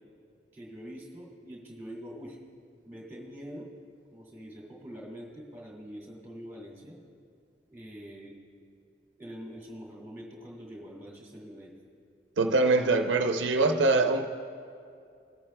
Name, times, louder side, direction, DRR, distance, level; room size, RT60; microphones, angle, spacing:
voice 1, 0.5-2.4 2.8-3.7 4.1-7.0 7.7-8.4 9.2-11.7, equal, 10° right, -4 dB, 2.1 m, -44 dB
voice 2, 12.4-14.3, right 3 dB, 85° right, 5 dB, 0.5 m, -23 dB
21.5 x 8.7 x 2.2 m, 2.4 s
head